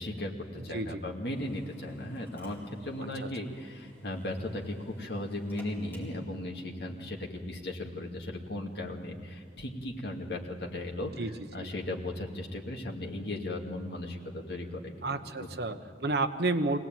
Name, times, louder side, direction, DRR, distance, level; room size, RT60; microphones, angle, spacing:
voice 1, 0.0-11.1 11.5-14.9 15.4-15.5, left 1 dB, 65° left, 0 dB, 2.4 m, -37 dB
Drill, 1.3-6.4, equal, 10° left, 4.3 m, -56 dB
voice 2, 15.0-16.8, right 2 dB, 60° right, 7 dB, 1.1 m, -30 dB
23.0 x 18.0 x 9.2 m, 2.3 s
head